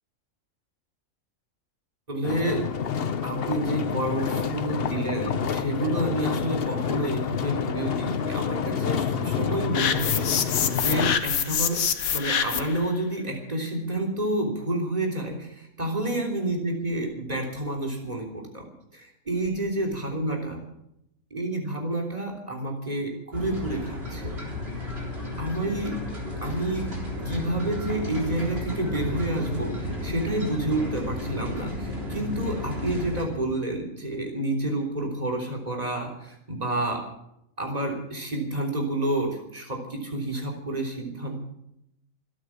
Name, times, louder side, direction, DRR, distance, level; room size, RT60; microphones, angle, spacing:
voice 1, 2.1-2.7 3.2-20.6 21.3-24.3 25.4-26.0 26.4-26.9 27.2-37.1 37.6-41.4, right 1 dB, 25° right, 0 dB, 3.4 m, -29 dB
sound 1, 2.2-11.2, left 7 dB, 50° left, 0.9 m, -28 dB
sound 2, 9.7-12.8, left 8 dB, 85° left, 1.5 m, -26 dB
sound 3, 23.3-33.3, left 1 dB, 45° right, 4.2 m, -33 dB
25.0 x 9.1 x 6.1 m, 0.79 s
omnidirectional pair, 1.5 m